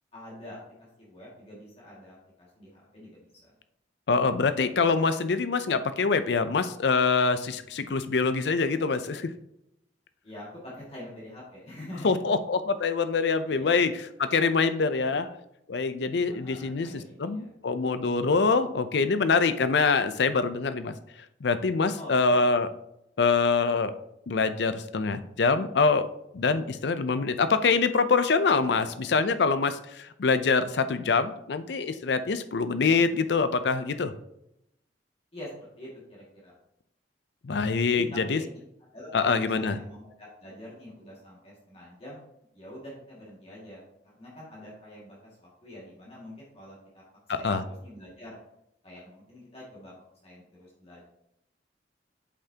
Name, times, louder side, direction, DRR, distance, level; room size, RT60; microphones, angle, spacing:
voice 1, 0.1-3.5 10.2-12.2 13.5-13.9 14.9-15.3 16.3-17.5 22.0-22.4 28.6-28.9 35.3-36.5 37.9-38.5 38.9-42.2 42.5-43.8 44.2-47.0 47.3-48.4 48.8-49.9 50.2-51.0, left 1 dB, 35° left, -5 dB, 2.1 m, -45 dB
voice 2, 4.1-9.3 12.0-15.3 15.7-20.9 21.4-22.7 23.2-23.9 24.3-26.1 26.3-34.1 37.4-38.4 39.1-39.7 47.3-47.6, left 4 dB, 65° left, 11 dB, 0.5 m, -25 dB
8.3 x 5.8 x 2.8 m, 0.80 s
head